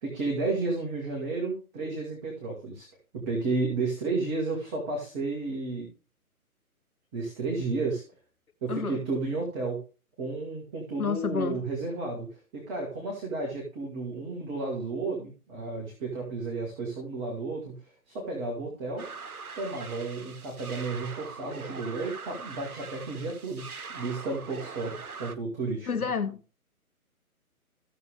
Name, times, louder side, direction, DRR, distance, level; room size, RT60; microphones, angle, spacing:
voice 1, 0.0-2.9 3.1-5.9 7.1-8.0 8.6-9.8 10.2-12.3 12.5-17.8 18.1-19.0 19.5-25.9, right 3 dB, 15° right, 1.6 m, -32 dB
voice 2, 8.7-9.0 11.0-11.6 25.9-26.4, left 5 dB, 75° left, 1.0 m, -29 dB
sound 1, 19.0-25.4, right 5 dB, 75° right, 1.1 m, -42 dB
14.0 x 6.8 x 3.4 m
figure-of-eight pair, 140°, 44 cm